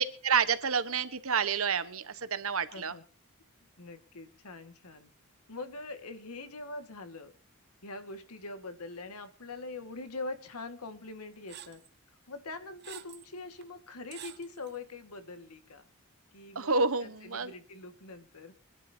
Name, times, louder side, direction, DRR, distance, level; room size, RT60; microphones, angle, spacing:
voice 1, 0.0-2.9 16.5-17.5, right 5 dB, 65° right, 13 dB, 1.1 m, -29 dB
voice 2, 2.7-3.0 3.8-5.1 5.5-7.3 7.8-11.8 12.3-15.8 16.3-16.7 17.0-18.5, left 3 dB, 85° left, 9 dB, 1.8 m, -43 dB
sound 1, 11.5-11.9 12.5-13.3 13.6-13.7 14.1-14.8, right 11 dB, 45° right, 0.9 m, -48 dB
24.5 x 11.5 x 2.8 m, 0.40 s
head